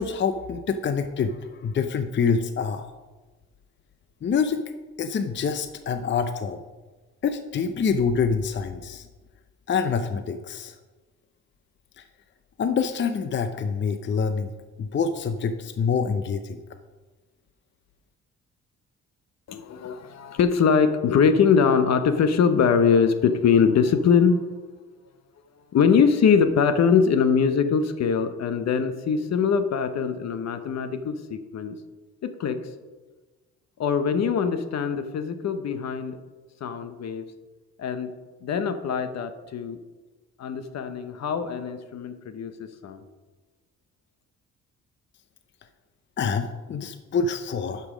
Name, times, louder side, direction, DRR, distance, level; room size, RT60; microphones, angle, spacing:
voice 1, 0.0-2.9 4.2-4.6 5.0-6.6 7.2-9.1 9.7-10.8 12.0-12.1 12.6-14.5 14.8-16.6 46.2-47.9, left 5 dB, 40° left, 9 dB, 0.6 m, -26 dB
voice 2, 19.5-24.4 25.7-31.8 32.2-32.6 33.8-36.2 36.6-37.2 37.8-38.1 38.4-39.8 40.4-43.0, left 6 dB, 60° left, 10 dB, 0.9 m, -22 dB
11.5 x 5.5 x 5.0 m, 1.3 s
cardioid pair, 90°, 30 cm